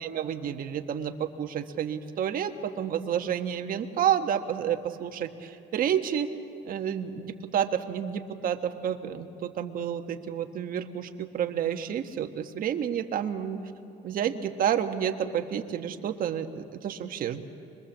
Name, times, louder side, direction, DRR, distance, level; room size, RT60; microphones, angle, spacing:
voice 1, 0.0-6.3 6.6-13.6 14.0-17.5, right 9 dB, 55° right, 6 dB, 1.4 m, -30 dB
25.0 x 22.0 x 7.4 m, 2.8 s
cardioid pair, 110°, 17 cm